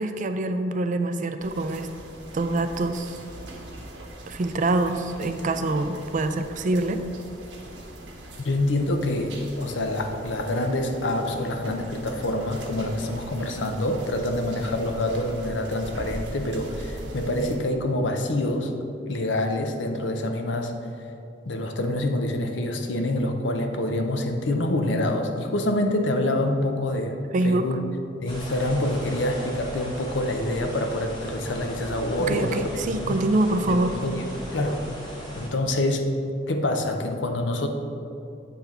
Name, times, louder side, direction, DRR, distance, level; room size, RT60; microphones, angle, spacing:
voice 1, 0.0-1.9 2.3-3.2 4.3-7.0 27.3-27.7 32.3-33.9, right 2 dB, 45° right, 8 dB, 0.4 m, -25 dB
sound 1, 1.4-17.5, right 1 dB, 70° right, 1.3 m, -41 dB
voice 2, 8.4-18.7 19.1-20.7 21.5-27.8 28.2-32.7 33.1-33.2 33.7-34.8 35.3-36.1 36.5-37.7, left 1 dB, 75° left, 5 dB, 0.7 m, -26 dB
sound 2, 28.3-35.5, equal, 30° left, 1.6 m, -38 dB
8.5 x 3.4 x 5.8 m, 2.6 s
head